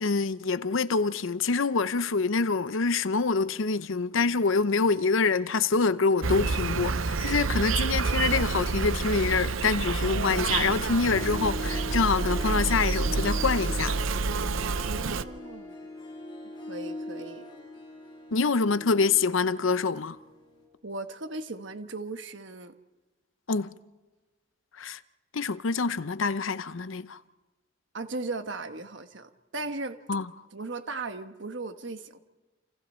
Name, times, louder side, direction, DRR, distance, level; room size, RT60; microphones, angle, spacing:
voice 1, 0.0-13.9 18.3-20.2 23.5-23.7 24.8-25.0 25.3-27.2 30.1-30.2, left 4 dB, 75° left, 0.7 m, -26 dB
Insect, 6.2-15.2, right 4 dB, 80° right, 0.7 m, -28 dB
Harp, 9.4-20.6, left 1 dB, 25° left, 7.5 m, -42 dB
voice 2, 14.6-15.7 16.7-17.4 20.8-22.7 27.9-30.0 30.5-32.2, right 3 dB, 60° right, 1.3 m, -37 dB
29.0 x 28.5 x 4.4 m
head